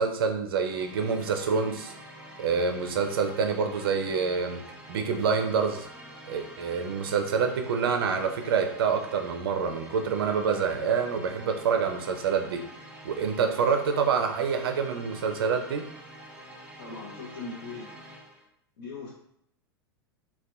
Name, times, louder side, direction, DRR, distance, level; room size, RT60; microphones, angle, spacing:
voice 1, 0.0-1.9 2.4-4.6 4.9-5.9 6.3-12.6 13.0-15.9, right 6 dB, 65° right, 5 dB, 0.4 m, -27 dB
sound 1, 0.5-18.5, right 1 dB, 10° right, 0.5 m, -47 dB
voice 2, 16.8-17.9 18.8-19.1, left 3 dB, 60° left, -5 dB, 0.6 m, -39 dB
2.6 x 2.2 x 2.2 m, 0.72 s
figure-of-eight pair, 90°, 13 cm